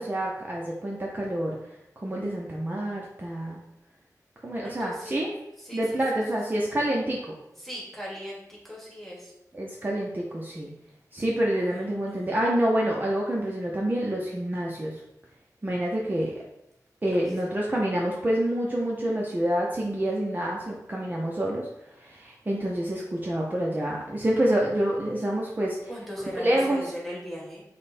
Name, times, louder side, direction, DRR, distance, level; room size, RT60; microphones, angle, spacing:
voice 1, 0.0-1.6 2.0-3.6 4.4-5.3 5.7-7.2 9.5-10.7 11.1-14.9 15.6-16.4 17.0-21.7 22.0-25.9 26.4-26.8, right 1 dB, 30° right, -3 dB, 0.6 m, -27 dB
voice 2, 4.6-5.2 5.6-6.2 7.6-9.3 11.6-12.4 17.1-17.4 25.9-27.6, equal, 5° left, -4 dB, 1.4 m, -39 dB
5.2 x 2.2 x 4.2 m, 0.87 s
wide cardioid pair, 95°, 7 cm